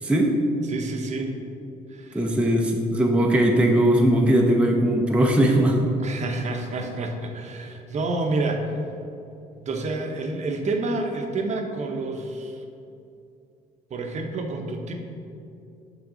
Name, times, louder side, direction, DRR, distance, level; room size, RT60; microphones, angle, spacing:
voice 1, 0.0-0.3 2.1-5.8, right 1 dB, 5° right, 0 dB, 0.6 m, -19 dB
voice 2, 0.6-1.4 1.9-2.6 6.0-8.8 9.6-12.6 13.9-14.9, right 2 dB, 45° right, 3 dB, 0.8 m, -29 dB
6.0 x 5.8 x 3.8 m, 2.7 s
cardioid pair, 110°, 17 cm